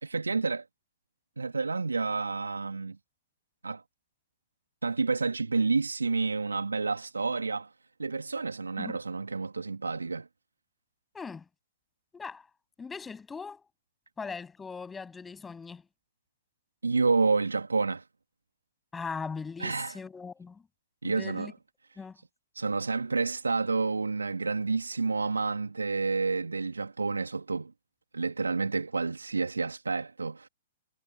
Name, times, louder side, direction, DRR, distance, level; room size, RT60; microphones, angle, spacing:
voice 1, 0.0-0.7 1.4-3.0 3.6-3.8 4.8-7.7 8.0-10.3 16.8-18.0 19.6-20.0 21.0-21.5 22.5-27.7 28.1-30.5, right 4 dB, 85° right, 2.4 m, -29 dB
voice 2, 11.1-11.4 12.1-12.4 12.8-13.6 14.2-15.8 18.9-20.6 21.0-21.5 22.0-22.2, left 5 dB, 10° left, 7.7 m, -39 dB
figure-of-eight pair, 115°, 0 cm